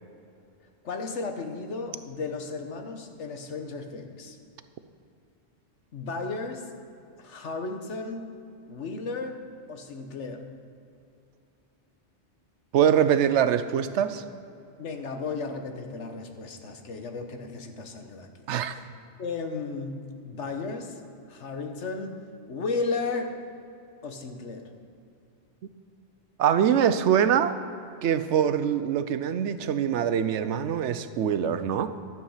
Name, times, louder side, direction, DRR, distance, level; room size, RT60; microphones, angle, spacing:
voice 1, 0.8-4.4 5.9-6.7 7.2-8.4 8.7-10.5 14.8-18.5 19.2-21.0 21.3-22.2 22.5-23.4 24.0-24.7, left 4 dB, 85° left, 5 dB, 1.4 m, -34 dB
voice 2, 12.7-14.2 18.5-18.8 26.4-27.6 28.0-31.9, right 9 dB, 80° right, 11 dB, 1.0 m, -23 dB
12.5 x 9.1 x 5.6 m, 2.6 s
omnidirectional pair, 1.2 m